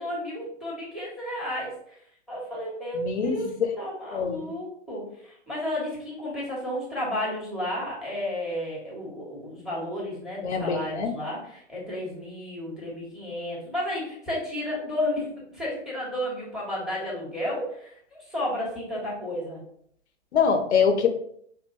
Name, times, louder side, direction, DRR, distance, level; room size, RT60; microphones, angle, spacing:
voice 1, 0.0-2.0 2.3-3.5 3.8-19.6, left 1 dB, ahead, -5 dB, 1.4 m, -32 dB
voice 2, 2.9-3.5 4.1-4.5 10.4-11.1 20.3-21.1, left 6 dB, 65° left, 6 dB, 0.8 m, -24 dB
5.6 x 2.4 x 2.6 m, 0.66 s
figure-of-eight pair, 115°, 37 cm